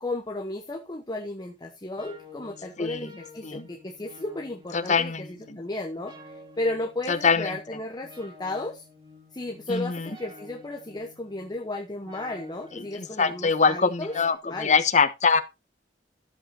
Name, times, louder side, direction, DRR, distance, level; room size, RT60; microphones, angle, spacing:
voice 1, 0.0-8.9 9.3-14.1 14.4-14.8, left 2 dB, 25° left, 1.0 m, -34 dB
sound 1, 2.0-14.4, left 2 dB, 25° right, 2.8 m, -50 dB
voice 2, 2.8-3.1 3.4-3.7 4.7-5.2 5.5-5.6 7.1-7.5 9.7-10.1 12.9-15.4, left 5 dB, 45° left, 1.1 m, -23 dB
13.0 x 7.9 x 2.8 m
head